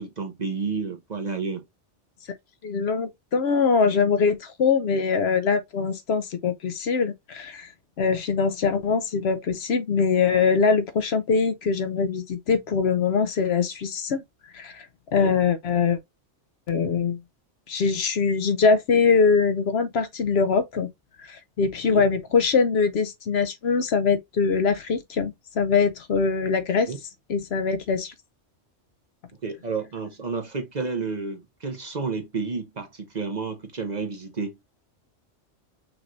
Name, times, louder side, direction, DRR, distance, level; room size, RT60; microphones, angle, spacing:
voice 1, 0.0-1.6 15.2-15.3 21.9-22.0 26.9-27.0 29.4-34.6, right 4 dB, 40° right, 0.8 m, -31 dB
voice 2, 2.6-7.7 8.0-14.2 14.5-14.9 15.1-16.0 16.7-17.2 17.7-20.9 21.2-26.9 27.3-28.1, left 5 dB, 65° left, 0.8 m, -23 dB
5.9 x 2.6 x 3.0 m
omnidirectional pair, 1.2 m